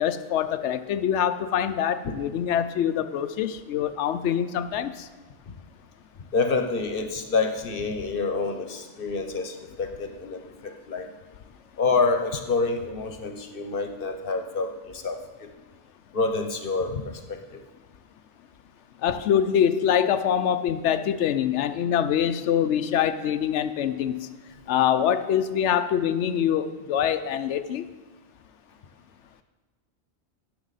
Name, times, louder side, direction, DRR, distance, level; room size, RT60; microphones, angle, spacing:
voice 1, 0.0-5.1 19.0-24.3 24.7-27.8, left 9 dB, 90° left, 11 dB, 0.9 m, -24 dB
voice 2, 6.3-11.1 11.8-15.5 16.1-17.6, left 4 dB, 55° left, 6 dB, 1.1 m, -27 dB
16.0 x 6.8 x 4.0 m, 1.2 s
omnidirectional pair, 1.1 m